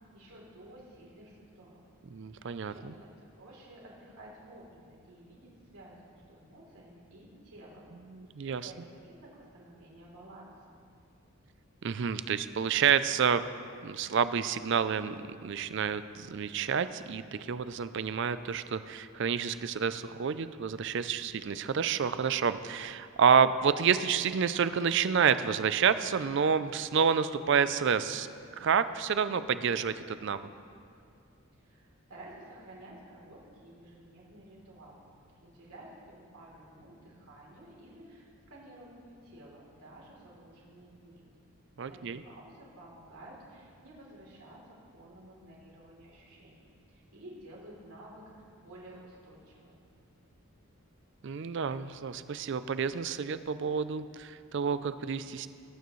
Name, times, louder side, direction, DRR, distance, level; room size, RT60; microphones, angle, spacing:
voice 1, 0.1-1.8 2.4-7.9 8.6-10.8 31.6-35.1 35.4-41.2 41.8-49.8, right 1 dB, 85° right, -4 dB, 3.2 m, -52 dB
voice 2, 2.1-2.9 8.1-8.7 11.8-13.4 13.8-28.3 28.6-30.4 41.8-42.2 51.2-55.5, right 6 dB, 55° right, 13 dB, 0.4 m, -29 dB
19.0 x 9.3 x 3.1 m, 2.5 s
head